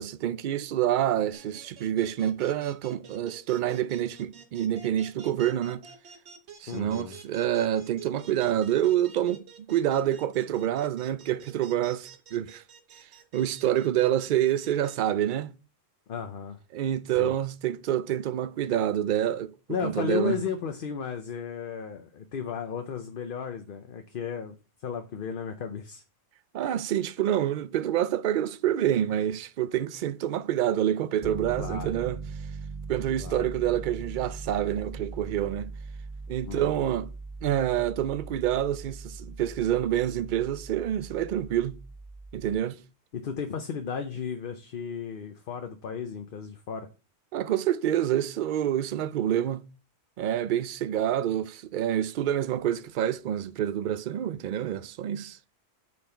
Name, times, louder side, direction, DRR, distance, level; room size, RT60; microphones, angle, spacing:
voice 1, 0.0-5.9 6.6-12.6 13.3-15.5 16.7-19.5 19.8-20.4 26.5-32.2 32.9-35.7 36.3-37.1 37.4-41.8 42.3-42.8 47.3-49.6 50.2-55.4, right 11 dB, 60° right, 0.6 m, -27 dB
sound 1, 1.3-14.9, right 6 dB, 75° right, 1.2 m, -49 dB
voice 2, 6.7-7.2 16.1-16.6 17.2-17.3 19.7-24.5 24.8-26.0 31.6-31.9 33.2-33.5 36.4-36.9 43.1-46.9, left 7 dB, 55° left, 0.9 m, -34 dB
Piano, 31.2-42.5, right 4 dB, 20° left, 1.2 m, -40 dB
8.4 x 4.4 x 4.4 m
omnidirectional pair, 1.1 m